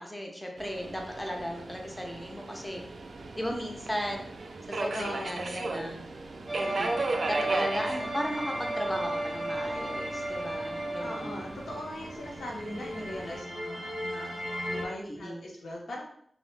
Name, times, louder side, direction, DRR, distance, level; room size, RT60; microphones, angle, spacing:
voice 1, 0.0-2.8 3.4-4.3 4.7-6.1 6.5-7.0 7.3-11.5 15.0-15.4, equal, 10° left, 0 dB, 0.4 m, -36 dB
Subway metro underground, 0.6-13.4, right 2 dB, 65° right, 0.3 m, -37 dB
voice 2, 4.9-5.4 11.0-16.0, left 1 dB, 80° left, -2 dB, 0.6 m, -40 dB
sound 1, 6.5-14.9, right 1 dB, 35° right, 0.6 m, -35 dB
2.7 x 2.0 x 3.1 m, 0.66 s
wide cardioid pair, 110°, 0 cm